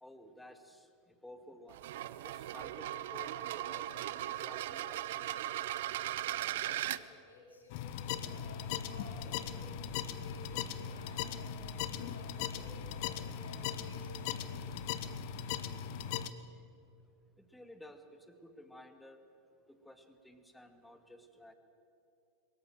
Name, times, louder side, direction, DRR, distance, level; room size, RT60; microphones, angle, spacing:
voice 1, 0.0-1.8 2.2-5.4 17.4-19.2 19.7-21.5, left 1 dB, 5° left, 8 dB, 2.2 m, -54 dB
sound 1, 1.7-7.0, right 13 dB, 60° right, 0.7 m, -38 dB
voice 2, 6.4-14.6, left 2 dB, 80° left, 0 dB, 4.9 m, -54 dB
sound 2, 7.7-16.3, left 8 dB, 50° left, 1.0 m, -39 dB
23.0 x 21.0 x 7.8 m, 2.7 s
figure-of-eight pair, 85°, 0 cm